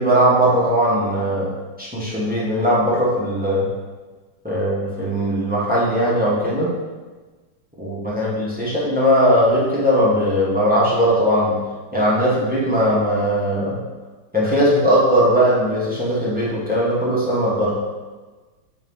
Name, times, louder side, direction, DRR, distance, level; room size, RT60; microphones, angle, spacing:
voice 1, 0.0-1.5 1.8-3.7 4.4-6.7 7.8-11.6 11.9-13.8 14.3-17.8, equal, 10° right, -7 dB, 0.6 m, -19 dB
5.8 x 3.0 x 5.4 m, 1.3 s
omnidirectional pair, 2.4 m